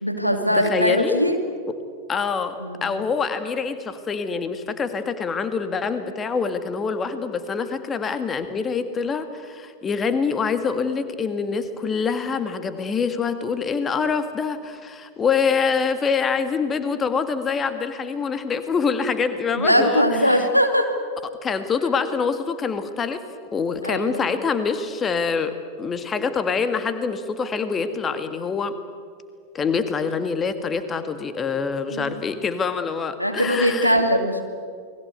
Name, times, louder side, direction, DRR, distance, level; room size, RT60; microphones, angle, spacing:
voice 1, 0.0-1.4 2.6-2.9 19.6-20.9 23.8-24.2 31.9-32.2 33.2-34.4, equal, 90° left, 5 dB, 2.6 m, -21 dB
voice 2, 0.5-1.2 2.1-20.5 21.4-23.2 23.5-28.8 29.5-34.0, left 5 dB, 20° left, 10 dB, 1.8 m, -25 dB
29.5 x 21.0 x 8.2 m, 2.1 s
figure-of-eight pair, 90°, 0 cm